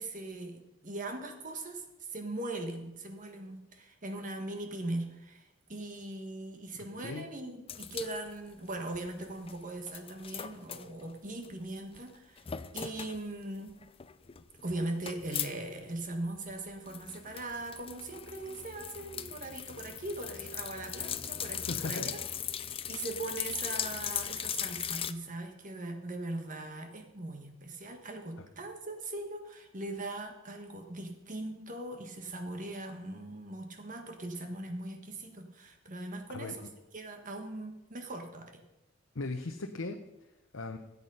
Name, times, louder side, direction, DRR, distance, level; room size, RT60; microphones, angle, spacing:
voice 1, 0.0-12.4 12.7-13.7 14.6-22.2 22.9-36.7 36.9-38.6, right 2 dB, 40° right, 5 dB, 1.5 m, -40 dB
sound 1, 7.7-9.6 9.9-11.6 11.9-12.0 12.4-13.2 13.6-15.5 15.8-15.9 16.1-25.1, left 9 dB, 30° left, 0.5 m, -39 dB
voice 2, 21.7-22.1 28.4-28.5 36.3-36.5 39.1-40.0 40.5-40.8, left 3 dB, 80° left, 4 dB, 0.8 m, -37 dB
13.5 x 8.3 x 5.6 m, 0.94 s
head